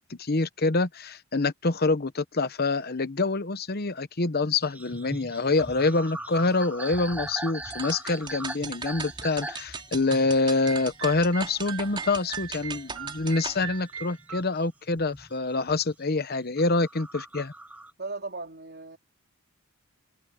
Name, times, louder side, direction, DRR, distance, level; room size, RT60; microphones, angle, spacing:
voice 1, 0.1-17.5, left 3 dB, 50° left, 1.0 m, -26 dB
sound 1, 4.6-14.5 14.9-15.9 16.4-17.9, right 1 dB, 5° right, 0.7 m, -41 dB
sound 2, 7.7-13.6, right 4 dB, 25° right, 5.1 m, -39 dB
sound 3, 10.6-14.4, right 8 dB, 80° right, 1.4 m, -40 dB
voice 2, 18.0-19.0, right 3 dB, 50° right, 3.8 m, -37 dB
head